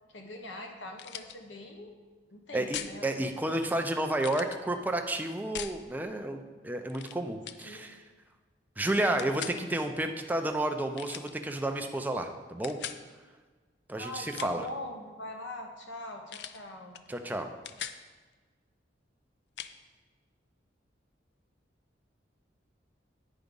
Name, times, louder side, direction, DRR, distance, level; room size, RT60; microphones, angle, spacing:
voice 1, 0.1-1.9 2.3-3.3 7.6-7.8 9.5-9.8 14.0-17.0, left 1 dB, 80° left, 3 dB, 1.1 m, -43 dB
sound 1, 0.9-1.4 2.7-3.0 4.2-4.6 5.5-5.8 6.9-7.2 7.4-7.7 9.2-9.6 10.9-11.3 12.6-13.0 14.2-14.7 16.3-16.6 16.9-17.1 17.4-18.0 19.6-19.7, left 9 dB, 60° left, 0.4 m, -40 dB
voice 2, 2.5-8.0 8.8-12.8 13.9-14.7 17.1-17.5, right 1 dB, 10° right, 5 dB, 0.4 m, -31 dB
9.3 x 4.9 x 5.3 m, 1.4 s
head